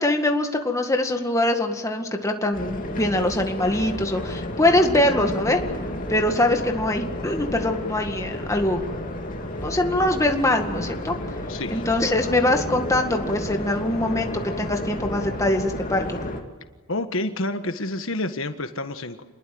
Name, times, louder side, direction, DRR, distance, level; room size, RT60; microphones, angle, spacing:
voice 1, 0.0-5.6 6.1-8.8 9.6-11.2 11.7-16.2, left 1 dB, 15° left, 4 dB, 2.0 m, -23 dB
sound 1, 2.5-16.4, left 1 dB, 40° left, 2.7 m, -31 dB
voice 2, 11.5-11.8 16.9-19.2, left 2 dB, 65° left, 8 dB, 1.5 m, -29 dB
28.0 x 21.5 x 7.8 m, 1.3 s
head